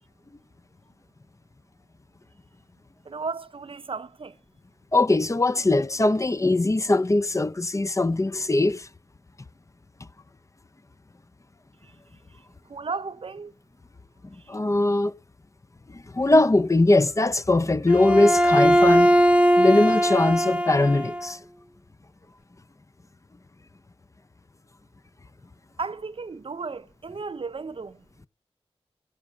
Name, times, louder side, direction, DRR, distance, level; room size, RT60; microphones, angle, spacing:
voice 1, 3.0-4.4 12.7-13.5 14.5-14.6 25.8-28.0, right 4 dB, 60° right, 0.7 m, -34 dB
voice 2, 4.9-8.9 14.5-15.1 15.9-19.1 19.6-21.4, left 2 dB, 30° left, 0.7 m, -21 dB
Bowed string instrument, 17.9-21.3, equal, 15° right, 0.9 m, -19 dB
15.0 x 6.6 x 7.5 m
wide cardioid pair, 60°, 10 cm